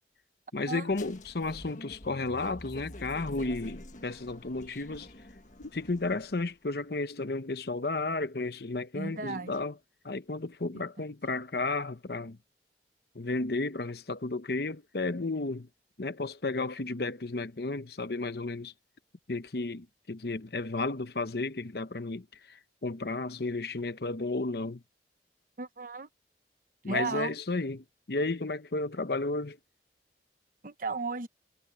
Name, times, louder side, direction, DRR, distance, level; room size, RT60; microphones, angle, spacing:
voice 1, 0.5-5.1 5.6-9.7 10.0-12.4 13.1-15.7 16.0-18.7 19.3-24.8 26.8-29.6, left 3 dB, 60° left, 0.9 m, -33 dB
sound 1, 0.9-6.5, left 1 dB, 45° left, 1.7 m, -47 dB
voice 2, 8.9-9.5 10.7-10.8 25.6-26.1 26.9-27.4 30.6-31.3, right 3 dB, 50° right, 1.0 m, -34 dB
head